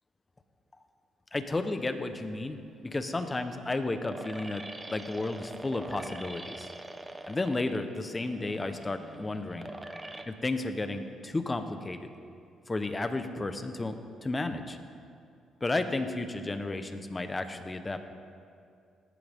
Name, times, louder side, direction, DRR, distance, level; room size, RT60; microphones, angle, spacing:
voice 1, 1.3-4.6 4.9-6.7 7.3-9.7 10.3-12.1 12.7-14.8 15.6-18.0, left 2 dB, 20° left, 8 dB, 1.1 m, -33 dB
sound 1, 2.7-10.2, right 2 dB, 15° right, 1.0 m, -44 dB
18.5 x 14.5 x 3.7 m, 2.4 s
cardioid pair, 90°, 0 cm